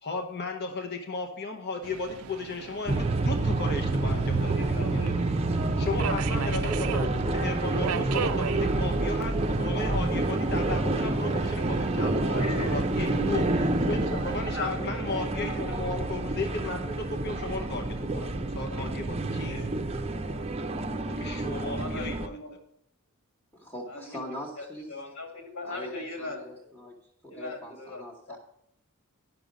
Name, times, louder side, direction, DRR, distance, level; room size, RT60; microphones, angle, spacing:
voice 1, 0.0-5.2 5.8-19.6 21.1-22.4, left 3 dB, 50° left, 4 dB, 0.9 m, -35 dB
Subway metro underground, 1.8-14.4, right 9 dB, 85° right, 0.4 m, -39 dB
sound 1, 2.9-22.3, right 2 dB, 30° right, 0.5 m, -28 dB
voice 2, 4.3-5.1 5.4-5.7 12.2-12.7 13.1-13.4 14.2-15.6 19.3-19.7 20.1-20.5 21.2-22.5 23.9-26.7 27.3-28.0 28.3-28.4, left 1 dB, 65° left, 2 dB, 2.1 m, -40 dB
voice 3, 23.5-24.9 25.6-27.0 27.2-28.4, left 1 dB, 10° left, -4 dB, 1.1 m, -42 dB
10.5 x 6.0 x 5.2 m, 0.73 s
head